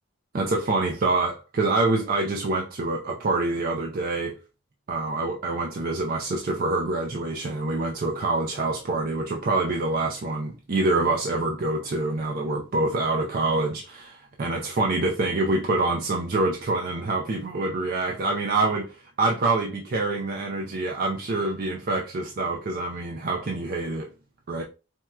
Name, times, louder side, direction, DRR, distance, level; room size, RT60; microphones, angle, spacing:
voice 1, 0.3-4.4 4.9-24.1 24.5-24.6, right 2 dB, 45° right, 0.4 m, -26 dB
4.4 x 2.1 x 2.3 m
head